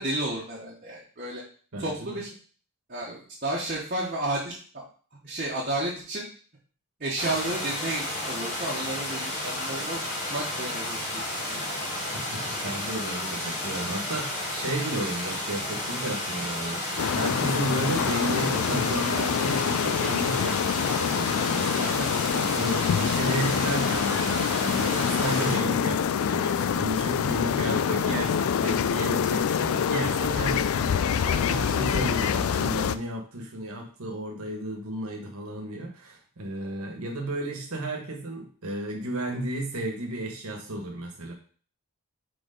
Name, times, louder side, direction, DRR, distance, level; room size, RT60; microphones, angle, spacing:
voice 1, 0.0-1.4 1.8-2.3 2.9-4.8 5.2-6.3 7.0-11.8 21.8-22.5 31.2-31.5, right 1 dB, 40° right, -5 dB, 1.2 m, -32 dB
voice 2, 1.7-2.2 12.1-41.3, right 1 dB, 75° right, 2 dB, 1.4 m, -33 dB
sound 1, 7.2-25.6, left 1 dB, 35° left, 1.9 m, -32 dB
sound 2, 17.0-33.0, left 7 dB, 70° left, 0.3 m, -26 dB
4.6 x 4.3 x 5.1 m, 0.43 s
head